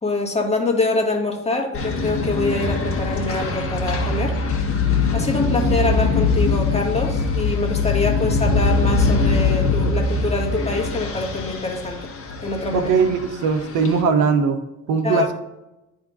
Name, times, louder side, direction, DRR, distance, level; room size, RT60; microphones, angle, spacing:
voice 1, 0.0-4.4 5.1-12.0 12.4-12.9 15.0-15.3, left 3 dB, 20° left, 0 dB, 1.7 m, -24 dB
sound 1, 1.7-14.0, left 3 dB, 45° left, 1.4 m, -22 dB
voice 2, 12.7-14.6 14.9-15.3, right 5 dB, 85° right, 7 dB, 0.8 m, -19 dB
10.5 x 3.6 x 2.4 m, 0.93 s
cardioid pair, 90°, 30 cm